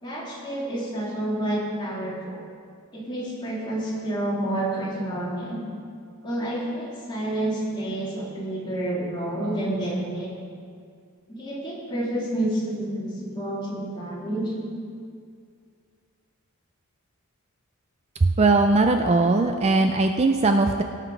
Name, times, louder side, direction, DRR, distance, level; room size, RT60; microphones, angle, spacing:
voice 1, 0.0-2.4 2.9-5.7 6.2-10.3 11.3-14.7, right 1 dB, 20° left, -6 dB, 2.6 m, -29 dB
voice 2, 18.2-20.8, right 3 dB, 30° right, 5 dB, 0.4 m, -19 dB
17.5 x 5.9 x 4.7 m, 2.3 s
head